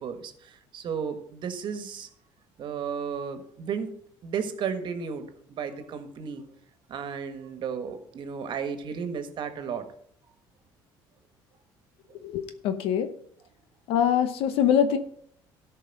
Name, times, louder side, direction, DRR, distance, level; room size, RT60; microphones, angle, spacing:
voice 1, 0.0-2.1 2.6-3.9 4.2-6.4 6.9-9.8, right 6 dB, 55° right, 8 dB, 1.6 m, -34 dB
voice 2, 12.2-13.1 13.9-15.0, left 9 dB, 75° left, 9 dB, 0.9 m, -24 dB
13.5 x 5.5 x 5.4 m, 0.64 s
supercardioid pair, 95°, 10 cm